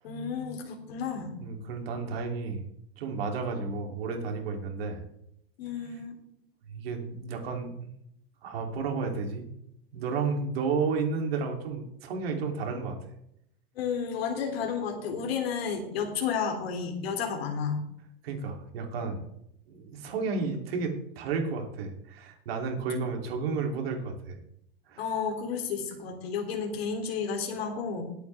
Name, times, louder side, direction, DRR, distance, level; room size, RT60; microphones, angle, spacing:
voice 1, 0.0-1.3 5.6-6.2 13.7-17.8 22.9-23.1 25.0-28.0, left 6 dB, 85° left, 3 dB, 3.1 m, -32 dB
voice 2, 1.4-2.7 3.0-5.0 6.7-7.9 8.4-9.4 9.9-13.0 18.2-19.2 19.7-24.4 24.9-25.0, right 4 dB, 80° right, 2 dB, 3.2 m, -32 dB
20.0 x 8.7 x 3.5 m, 0.76 s
supercardioid pair, 155°, 30 cm